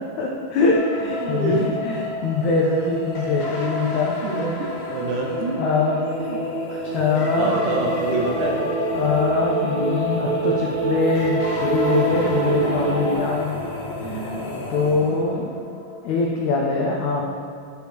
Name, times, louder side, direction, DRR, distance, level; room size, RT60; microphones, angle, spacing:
voice 1, 0.2-4.1 4.5-4.7 5.5-6.0 6.8-7.5 8.9-13.6 14.0-14.3 14.7-15.5 16.0-17.2, left 4 dB, 90° left, -1 dB, 1.6 m, -23 dB
sound 1, 0.7-16.3, left 2 dB, 75° left, 2.4 m, -33 dB
sound 2, 0.9-15.5, left 1 dB, 50° left, 1.3 m, -39 dB
voice 2, 1.1-1.8 2.5-2.9 3.7-3.8 4.2-5.6 6.2-6.4 7.0-8.6 14.0-14.5, right 3 dB, 70° right, -1 dB, 2.2 m, -27 dB
sound 3, 4.8-13.1, right 3 dB, 90° right, 3.4 m, -26 dB
9.6 x 6.3 x 3.4 m, 2.3 s
omnidirectional pair, 4.1 m